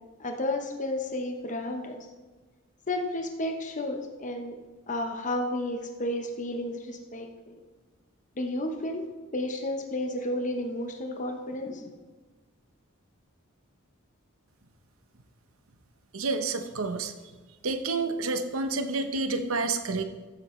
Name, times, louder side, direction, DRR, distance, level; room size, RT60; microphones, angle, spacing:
voice 1, 0.2-2.0 2.9-4.6 4.9-7.6 8.4-9.1 9.3-11.9, left 1 dB, 35° left, 4 dB, 0.8 m, -32 dB
voice 2, 16.1-17.1 17.6-20.0, right 3 dB, 85° right, 8 dB, 0.9 m, -29 dB
14.0 x 7.7 x 3.2 m, 1.3 s
head